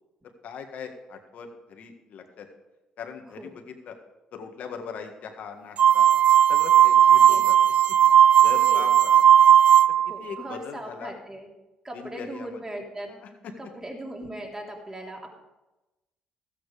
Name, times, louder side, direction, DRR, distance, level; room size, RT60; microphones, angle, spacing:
voice 1, 0.4-2.5 3.0-4.0 4.3-6.2 6.5-7.6 7.9-8.0 8.4-9.2 10.1-11.1 11.9-12.6 13.1-13.5, left 6 dB, 65° left, 5 dB, 1.8 m, -40 dB
sound 1, 5.8-10.2, right 10 dB, 50° right, 0.3 m, -16 dB
voice 2, 10.1-11.5 11.8-13.1 13.6-15.3, right 1 dB, 20° right, -1 dB, 3.4 m, -38 dB
13.5 x 8.8 x 5.0 m, 1.0 s
supercardioid pair, 65°, 3 cm